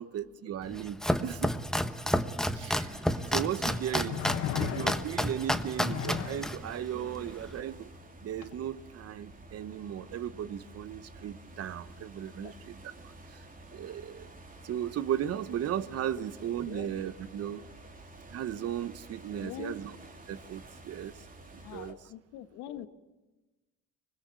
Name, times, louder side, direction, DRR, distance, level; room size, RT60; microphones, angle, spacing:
voice 1, 0.0-1.6 2.5-3.0 3.3-4.2 4.5-7.9 8.2-12.8 13.0-13.4 13.7-14.3 14.6-17.7 18.3-19.9 20.3-21.1 21.5-22.0, right 10 dB, 55° right, 15 dB, 1.1 m, -36 dB
Domestic sounds home sounds, 0.6-7.6, equal, ahead, 1.1 m, -31 dB
sound 1, 2.6-21.9, right 2 dB, 30° right, 3.4 m, -51 dB
sound 2, 4.1-5.3 5.8-6.5 8.4-8.5, left 11 dB, 55° left, 1.4 m, -35 dB
voice 2, 19.3-19.8 21.6-22.9, left 11 dB, 80° left, 10 dB, 1.6 m, -43 dB
24.5 x 20.5 x 8.4 m, 1.1 s
supercardioid pair, 85°, 29 cm